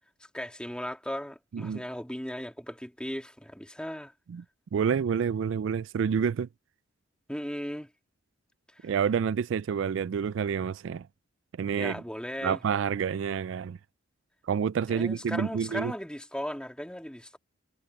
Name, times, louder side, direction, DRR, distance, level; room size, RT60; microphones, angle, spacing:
voice 1, 0.3-4.1 7.3-7.9 11.7-12.6 14.9-17.4, equal, 5° left, 2.0 m, -37 dB
voice 2, 4.7-6.5 8.8-11.1 11.6-12.0 12.4-13.8 14.5-15.9, right 7 dB, 70° right, 0.3 m, -28 dB
head